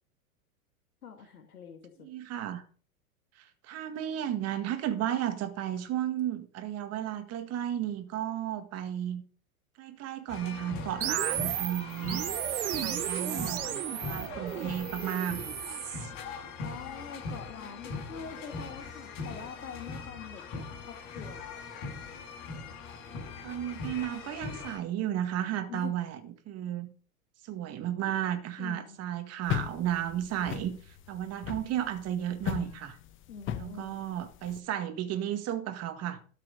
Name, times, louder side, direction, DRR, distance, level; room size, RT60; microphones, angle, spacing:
voice 1, 1.0-2.1 16.6-20.4 20.7-21.5 25.7-25.9 28.6-29.0 33.3-34.0, left 6 dB, 85° left, 5 dB, 1.6 m, -44 dB
voice 2, 2.0-2.6 3.4-9.2 9.8-12.2 12.8-15.4 23.4-26.9 27.4-33.0 33.5-36.2, right 11 dB, 35° right, 8 dB, 1.9 m, -33 dB
sound 1, 10.3-24.8, left 4 dB, 50° left, 6.4 m, -41 dB
sound 2, 11.0-16.1, right 12 dB, 80° right, 0.9 m, -34 dB
sound 3, 29.5-34.6, left 10 dB, 30° left, 0.8 m, -37 dB
12.5 x 6.8 x 5.2 m, 0.42 s
hypercardioid pair, 105°, 44 cm